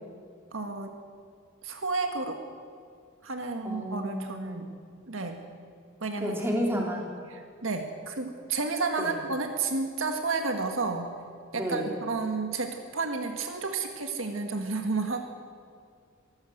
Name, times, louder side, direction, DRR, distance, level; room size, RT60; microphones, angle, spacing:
voice 1, 0.5-0.9 1.6-2.4 3.2-4.7 5.1-5.4 6.0-6.4 6.8-6.9 7.3-11.1 11.5-15.2, right 3 dB, 70° right, 5 dB, 1.7 m, -31 dB
voice 2, 3.6-4.6 6.2-7.1 9.0-9.2 11.5-11.9, equal, 10° right, -1 dB, 3.6 m, -31 dB
23.5 x 14.5 x 7.9 m, 2.1 s
head